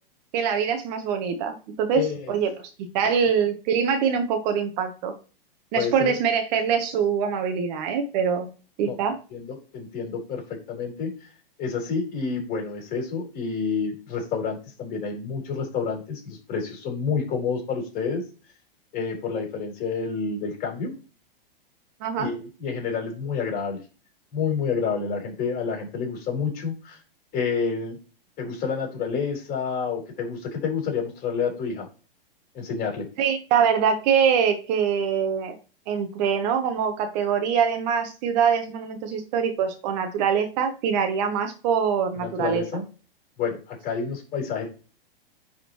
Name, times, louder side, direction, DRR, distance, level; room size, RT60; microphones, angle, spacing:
voice 1, 0.3-2.0 2.3-2.5 2.9-5.1 5.7-8.5 8.8-9.2 22.0-22.3 33.2-35.5 35.9-42.6, right 7 dB, 45° right, 6 dB, 1.3 m, -24 dB
voice 2, 1.9-2.3 3.0-3.2 5.7-6.1 8.8-9.0 9.3-11.3 11.6-18.2 18.9-20.9 22.2-23.8 24.3-27.0 27.3-28.0 28.4-31.9 32.5-33.1 42.2-42.8 43.4-44.7, left 5 dB, 30° left, 0 dB, 4.2 m, -29 dB
9.9 x 4.2 x 3.1 m, 0.35 s
hypercardioid pair, 115°, 30 cm